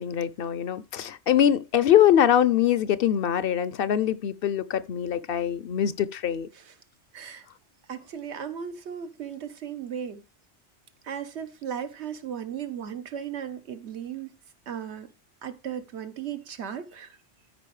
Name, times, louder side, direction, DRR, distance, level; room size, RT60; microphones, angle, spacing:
voice 1, 0.0-6.5, left 10 dB, 60° left, 0.7 m, -23 dB
voice 2, 7.1-7.4 7.9-10.2 11.0-14.3 14.7-15.1 15.4-17.1, right 8 dB, 75° right, 1.3 m, -36 dB
14.0 x 5.1 x 3.2 m
omnidirectional pair, 1.1 m